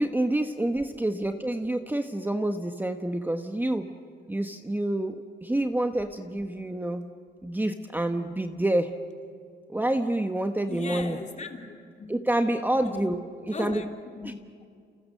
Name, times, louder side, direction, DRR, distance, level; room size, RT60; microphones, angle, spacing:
voice 1, 0.0-3.9 4.3-7.1 7.4-8.9 9.7-11.2 12.1-13.2 13.5-13.8, right 1 dB, 10° right, 6 dB, 1.3 m, -27 dB
voice 2, 10.7-11.8 12.7-13.1 13.5-14.3, left 4 dB, 35° left, 4 dB, 3.0 m, -38 dB
29.0 x 29.0 x 6.7 m, 2.2 s
cardioid pair, 90°, 20 cm